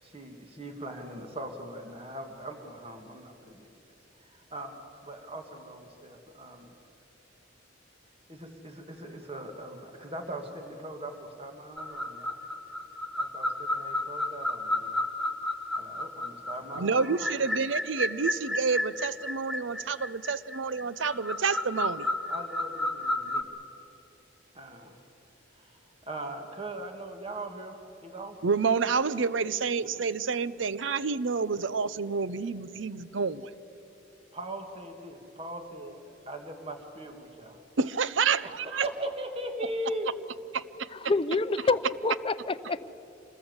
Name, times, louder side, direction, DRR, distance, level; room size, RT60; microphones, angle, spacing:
voice 1, 0.0-3.7 4.2-6.8 8.3-12.4 13.2-15.1 15.8-17.4 22.3-23.5 24.5-25.0 25.5-25.8 26.1-28.4 29.8-30.0 34.3-37.6 38.4-40.2 42.2-42.3, right 1 dB, 30° right, 5 dB, 2.0 m, -40 dB
sound 1, 11.8-23.4, left 1 dB, ahead, 1.2 m, -32 dB
voice 2, 16.8-22.1 28.4-33.5 37.8-38.8 40.5-40.6 41.0-41.1, right 5 dB, 75° right, 16 dB, 0.7 m, -29 dB
voice 3, 40.9-42.8, left 3 dB, 30° left, 12 dB, 0.6 m, -27 dB
26.5 x 20.0 x 8.0 m, 2.8 s
head